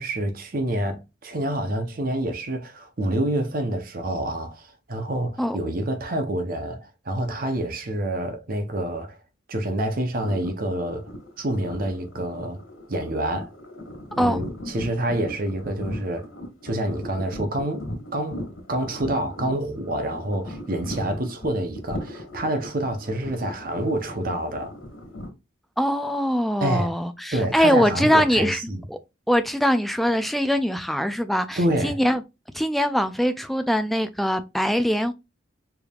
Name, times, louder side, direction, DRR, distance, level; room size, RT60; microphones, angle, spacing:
voice 1, 0.0-9.2 9.5-11.1 11.4-12.6 12.9-13.5 14.2-16.3 16.6-24.7 26.6-27.0 27.3-28.8 31.6-32.0, right 1 dB, 45° right, 0.7 m, -27 dB
sound 1, 10.1-25.3, left 1 dB, 85° left, 1.8 m, -38 dB
voice 2, 25.8-28.6 28.9-29.0 29.3-32.2 32.5-35.1, equal, ahead, 0.3 m, -22 dB
4.6 x 3.4 x 2.3 m
head